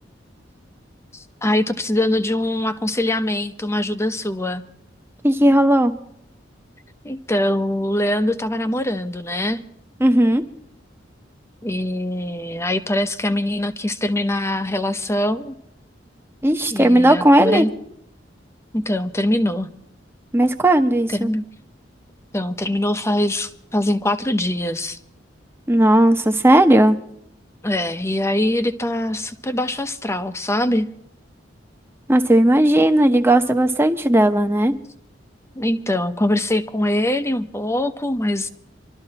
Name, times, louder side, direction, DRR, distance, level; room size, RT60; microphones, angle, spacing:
voice 1, 1.1-4.6 7.0-9.6 11.6-15.5 16.7-17.7 18.7-19.7 21.1-21.4 22.3-25.0 27.6-30.9 35.6-38.5, left 1 dB, 15° left, 9 dB, 0.8 m, -23 dB
voice 2, 5.2-5.9 10.0-10.4 16.4-17.7 20.3-21.3 25.7-27.0 32.1-34.7, right 1 dB, 15° right, 7 dB, 0.9 m, -15 dB
26.5 x 12.5 x 2.9 m, 0.73 s
head